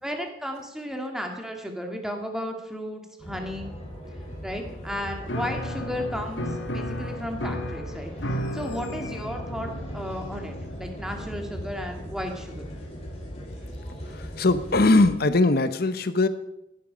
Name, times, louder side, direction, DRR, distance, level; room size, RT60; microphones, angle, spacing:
voice 1, 0.0-3.7 4.4-6.5 6.7-8.1 8.5-12.7, equal, 5° right, 2 dB, 2.1 m, -34 dB
sound 1, 3.2-15.2, equal, 35° left, 4.3 m, -39 dB
Piano, 5.3-13.7, equal, 90° left, 1.7 m, -35 dB
voice 2, 14.4-16.3, left 2 dB, 55° left, 11 dB, 0.9 m, -20 dB
16.0 x 11.5 x 5.1 m, 0.86 s
head